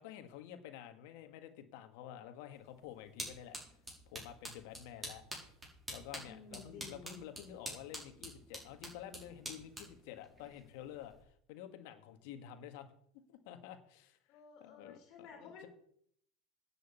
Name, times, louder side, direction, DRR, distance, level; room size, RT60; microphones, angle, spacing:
voice 1, 0.0-3.6 4.1-5.2 5.9-12.9 13.3-14.2 14.6-15.7, left 10 dB, 70° left, 8 dB, 1.7 m, -50 dB
sound 1, 2.5-11.2, right 1 dB, 15° right, 4.8 m, -49 dB
voice 2, 6.2-7.2 14.3-15.7, left 5 dB, 50° left, 2 dB, 2.8 m, -53 dB
10.0 x 6.5 x 8.3 m, 0.66 s
supercardioid pair, 115°, 0 cm